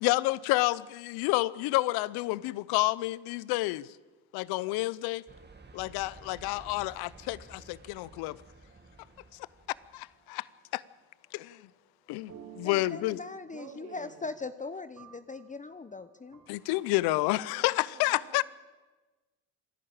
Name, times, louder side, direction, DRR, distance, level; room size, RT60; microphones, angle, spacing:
voice 1, 0.0-3.9 4.3-5.2 5.7-8.4 9.9-10.5 10.7-10.8 11.3-11.6 12.1-13.2 16.5-18.4, left 19 dB, 75° left, 0.7 m, -29 dB
sound 1, 5.3-10.2, right 3 dB, 25° right, 2.4 m, -53 dB
sound 2, 8.7-10.5 12.3-17.1, right 8 dB, 60° right, 5.1 m, -55 dB
voice 2, 12.6-16.4, left 3 dB, 20° left, 0.9 m, -40 dB
voice 3, 13.5-14.3 17.3-18.4, right 8 dB, 80° right, 2.0 m, -51 dB
26.5 x 11.0 x 8.8 m
hypercardioid pair, 55°, 38 cm